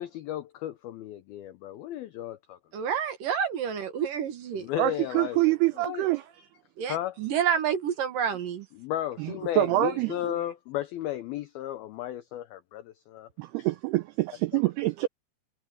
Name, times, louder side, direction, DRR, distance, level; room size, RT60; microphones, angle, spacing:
voice 1, 0.0-2.6 4.5-5.5 5.8-6.0 6.9-7.1 8.8-13.3, left 12 dB, 85° left, 2.1 m, -34 dB
voice 2, 2.7-4.7 6.8-8.7, right 8 dB, 60° right, 2.6 m, -29 dB
voice 3, 4.8-6.2 9.2-10.3 13.4-15.1, right 18 dB, 90° right, 2.2 m, -26 dB
omnidirectional pair, 5.4 m